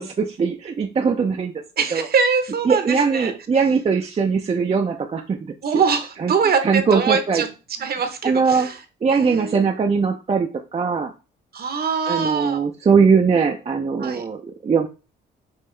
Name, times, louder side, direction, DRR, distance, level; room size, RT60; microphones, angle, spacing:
voice 1, 0.0-1.5 1.9-2.0 2.7-5.5 6.2-6.3 6.6-7.4 8.2-8.7 9.0-11.1 12.1-14.9, right 5 dB, 30° right, 3 dB, 0.6 m, -20 dB
voice 2, 1.8-3.3 5.6-7.5 7.8-8.8 9.1-9.7 11.5-12.6 14.0-14.2, right 5 dB, 50° right, 7 dB, 1.0 m, -23 dB
5.5 x 2.9 x 3.2 m, 0.31 s
cardioid pair, 90°, 20 cm